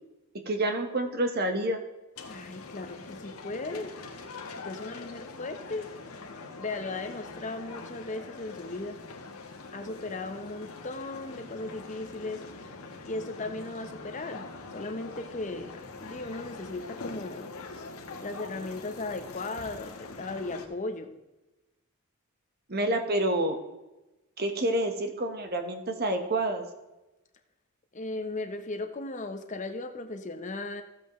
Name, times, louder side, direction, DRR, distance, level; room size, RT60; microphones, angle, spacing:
voice 1, 0.5-1.8 22.7-23.6 24.4-26.6, right 1 dB, 45° right, 5 dB, 1.3 m, -28 dB
sound 1, 2.2-20.7, left 3 dB, 75° left, 1.3 m, -43 dB
voice 2, 2.3-3.9 4.6-5.9 6.6-9.0 9.7-12.4 13.0-14.5 14.7-17.5 18.2-21.1 27.9-30.8, left 2 dB, 35° left, 7 dB, 0.9 m, -37 dB
14.5 x 7.8 x 3.1 m, 1.0 s
head